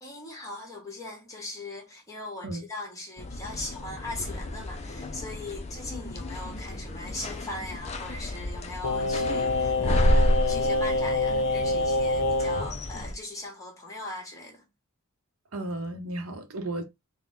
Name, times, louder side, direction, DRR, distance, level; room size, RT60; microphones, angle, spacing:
voice 1, 0.0-14.6, left 2 dB, 15° left, 1.4 m, -39 dB
sound 1, 3.2-13.1, left 1 dB, 30° left, 0.5 m, -30 dB
Singing, 8.8-12.7 13.0-13.1, left 2 dB, 60° left, 0.8 m, -26 dB
voice 2, 15.5-16.8, right 2 dB, 90° right, 0.8 m, -34 dB
4.1 x 2.2 x 3.6 m
head